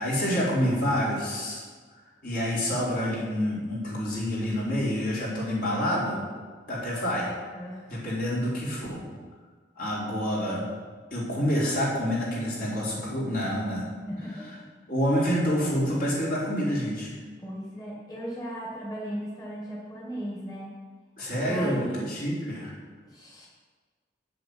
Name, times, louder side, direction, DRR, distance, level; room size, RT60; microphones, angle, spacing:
voice 1, 0.0-1.6 2.2-6.2 6.7-7.3 7.9-9.0 9.8-10.7 11.1-13.8 14.9-17.1 21.2-22.7, equal, 55° left, -6 dB, 4.0 m, -27 dB
voice 2, 7.5-7.9 14.1-14.7 17.4-20.8 21.3-22.1 23.0-23.5, equal, 20° left, -4 dB, 2.2 m, -37 dB
8.9 x 7.6 x 7.8 m, 1.5 s
head